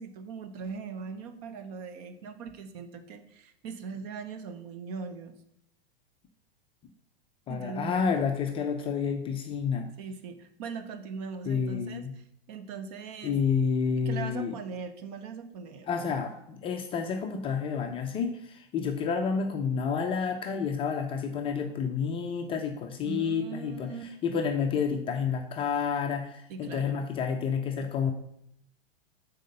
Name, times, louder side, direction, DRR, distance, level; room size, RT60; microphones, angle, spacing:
voice 1, 0.0-5.4 7.5-8.0 10.0-13.7 14.0-15.9 23.0-24.0 26.5-27.0, right 5 dB, 40° right, 8 dB, 0.9 m, -40 dB
voice 2, 7.5-9.9 11.5-12.1 13.2-14.5 15.9-23.9 24.2-28.1, left 6 dB, 20° left, 4 dB, 0.5 m, -29 dB
6.4 x 4.2 x 6.5 m, 0.74 s
figure-of-eight pair, 100°, 31 cm